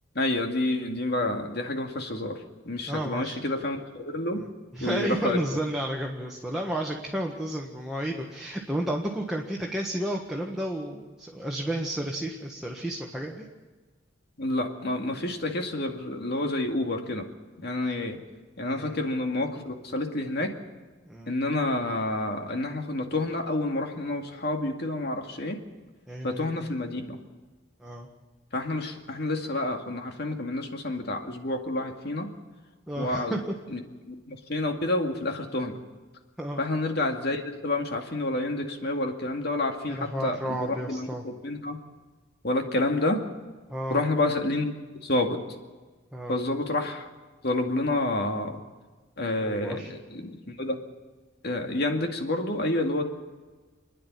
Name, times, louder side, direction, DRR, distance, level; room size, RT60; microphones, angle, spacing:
voice 1, 0.2-2.4 2.6-4.4 4.8-5.4 14.4-17.3 17.6-18.2 18.6-20.5 21.3-25.6 26.2-27.2 28.5-32.3 33.0-33.4 33.7-35.8 36.6-41.8 42.4-43.2 43.9-44.7 45.0-45.4 46.3-47.1 47.4-48.6 49.2-50.8 51.4-53.0, left 2 dB, 55° left, 3 dB, 2.3 m, -29 dB
voice 2, 2.9-3.4 4.4-4.5 4.7-13.4 18.6-19.1 21.1-21.3 26.1-26.7 27.8-28.1 32.9-33.4 36.4-36.6 39.9-41.2 43.7-44.0 46.1-46.4 49.4-49.9, right 1 dB, ahead, -2 dB, 1.6 m, -32 dB
28.5 x 10.5 x 9.6 m, 1.3 s
head